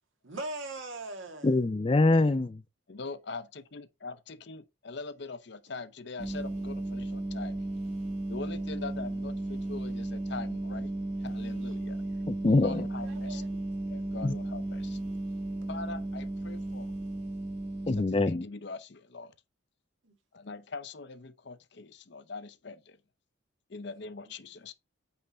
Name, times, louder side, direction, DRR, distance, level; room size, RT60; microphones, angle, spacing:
voice 1, 0.2-1.5 12.5-13.6 20.0-20.1, right 2 dB, 70° right, 2.0 m, -41 dB
voice 2, 1.4-2.6 12.3-12.8 14.2-14.3 17.9-18.5, left 2 dB, 25° left, 0.4 m, -24 dB
voice 3, 2.9-7.6 8.3-10.9 11.2-12.0 12.6-13.6 13.9-15.0 15.7-16.9 17.9-19.3 20.3-23.0 23.7-24.7, left 3 dB, 55° left, 0.7 m, -42 dB
sound 1, 6.2-18.1, right 2 dB, 30° right, 1.5 m, -35 dB
8.8 x 3.6 x 4.2 m
head